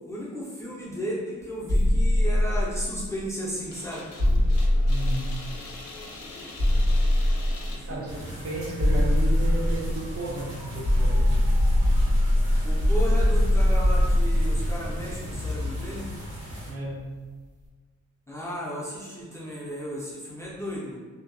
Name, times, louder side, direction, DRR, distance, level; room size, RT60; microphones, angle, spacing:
voice 1, 0.1-4.1 7.7-8.0 12.6-16.1 18.3-21.0, equal, 10° left, -7 dB, 0.4 m, -34 dB
sound 1, 1.7-3.2 4.2-5.8 6.6-7.9 8.8-10.4 10.8-16.1, left 1 dB, 85° right, 1.1 m, -22 dB
sound 2, 3.7-8.7, left 2 dB, 65° left, 0.5 m, -43 dB
voice 2, 4.8-5.3 7.8-11.3 16.7-17.1, right 1 dB, 50° right, -3 dB, 0.6 m, -33 dB
sound 3, 8.1-16.7, equal, 70° right, 1.0 m, -38 dB
2.6 x 2.2 x 2.5 m, 1.4 s
wide cardioid pair, 160°, 30 cm